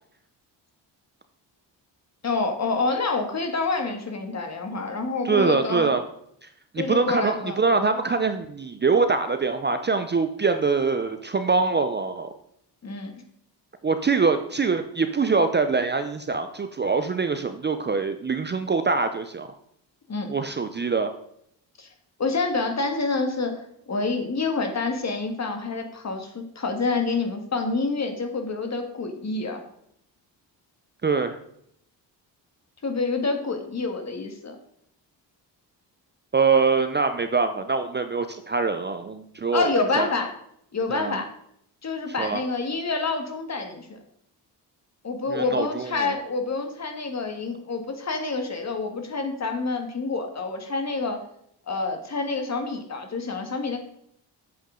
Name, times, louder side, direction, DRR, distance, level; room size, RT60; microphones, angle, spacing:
voice 1, 2.2-5.9 6.8-7.6 12.8-13.1 20.1-20.3 21.8-21.9 22.2-29.6 32.8-34.6 39.5-40.3 40.7-41.3 41.8-44.0 45.0-51.2 51.7-53.8, left 3 dB, 35° left, 5 dB, 1.6 m, -27 dB
voice 2, 5.2-6.0 6.7-12.3 13.8-19.5 20.3-21.2 31.0-31.4 36.3-39.7 40.0-40.1 40.9-41.2 42.2-42.4 45.3-46.2, right 4 dB, 25° right, 8 dB, 0.6 m, -24 dB
8.5 x 7.3 x 3.8 m, 0.71 s
cardioid pair, 100°, 44 cm